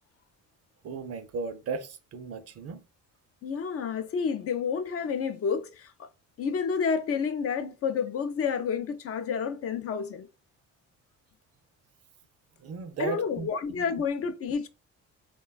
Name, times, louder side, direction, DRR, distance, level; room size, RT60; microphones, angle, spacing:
voice 1, 0.8-2.8 12.6-13.5 13.8-13.9, right 5 dB, 55° right, 0.5 m, -35 dB
voice 2, 3.4-6.1 6.4-10.3 13.0-14.7, left 6 dB, 50° left, 0.4 m, -30 dB
3.0 x 2.2 x 2.3 m
cardioid pair, 90°, 30 cm